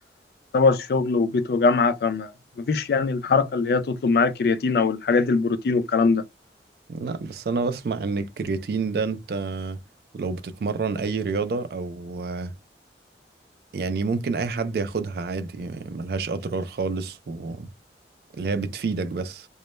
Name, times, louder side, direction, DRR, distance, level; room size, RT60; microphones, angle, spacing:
voice 1, 0.5-2.3 2.6-6.2, left 4 dB, 60° left, 0.3 m, -21 dB
voice 2, 6.9-9.8 10.1-12.5 13.7-17.7 18.4-19.5, right 4 dB, 60° right, 0.3 m, -28 dB
2.1 x 2.0 x 2.9 m
head